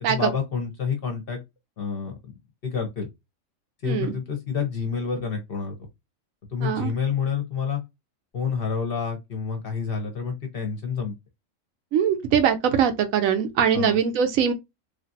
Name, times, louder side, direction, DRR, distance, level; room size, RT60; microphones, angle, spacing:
voice 1, 0.0-1.4 1.8-2.4 2.6-3.1 3.8-5.7 6.5-7.8 8.3-11.1 13.7-14.0, left 6 dB, 50° left, 0.8 m, -28 dB
voice 2, 6.6-6.9 11.9-14.5, right 8 dB, 75° right, 1.0 m, -22 dB
3.2 x 2.4 x 2.6 m
omnidirectional pair, 1.4 m